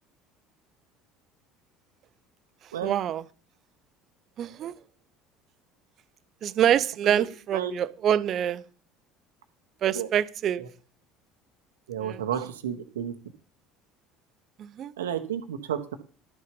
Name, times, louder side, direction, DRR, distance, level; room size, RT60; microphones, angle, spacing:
voice 1, 2.8-3.2 4.4-4.7 6.4-8.6 9.8-10.6 12.0-12.2 14.6-14.9, right 10 dB, 45° right, 16 dB, 0.7 m, -25 dB
voice 2, 11.9-13.1 15.0-16.0, right 9 dB, 75° right, 8 dB, 0.9 m, -32 dB
11.5 x 6.6 x 5.3 m, 0.41 s
figure-of-eight pair, 60°, 0 cm